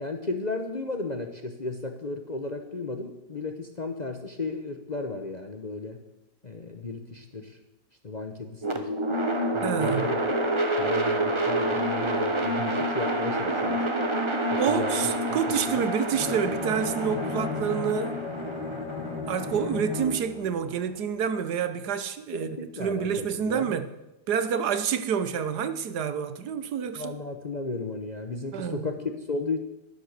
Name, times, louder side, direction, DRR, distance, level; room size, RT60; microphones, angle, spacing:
voice 1, 0.0-6.0 6.4-7.6 8.0-8.9 9.5-10.2 10.8-13.9 14.5-15.9 22.3-23.8 26.9-29.6, left 3 dB, 35° left, 0.8 m, -34 dB
sound 1, 8.6-20.7, right 1 dB, 20° right, 1.0 m, -28 dB
voice 2, 9.6-10.0 14.6-18.2 19.3-23.9 24.3-27.1 28.5-28.8, right 7 dB, 75° right, 1.4 m, -28 dB
Bowed string instrument, 16.1-20.5, left 4 dB, 90° left, 3.9 m, -34 dB
11.0 x 11.0 x 6.7 m
omnidirectional pair, 1.8 m